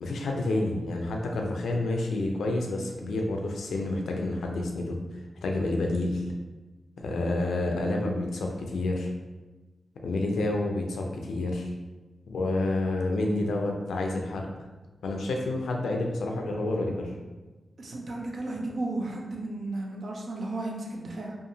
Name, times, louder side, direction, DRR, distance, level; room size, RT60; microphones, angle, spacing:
voice 1, 0.0-5.0 5.4-6.2 7.0-9.1 10.0-11.7 12.3-14.5 15.0-17.1, left 2 dB, 90° left, 1 dB, 0.4 m, -29 dB
voice 2, 17.8-21.4, right 2 dB, 65° right, 0 dB, 0.5 m, -34 dB
2.8 x 2.4 x 2.7 m, 1.2 s
cardioid pair, 45°, 0 cm